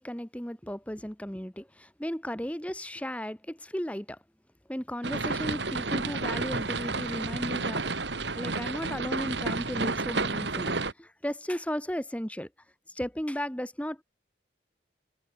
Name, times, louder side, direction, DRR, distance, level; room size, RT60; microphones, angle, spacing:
voice 1, 0.0-4.2 4.7-7.8 8.3-12.5 12.9-14.0, equal, 5° left, 1.5 m, -35 dB
sound 1, 5.0-10.9, right 3 dB, 80° right, 2.6 m, -31 dB
head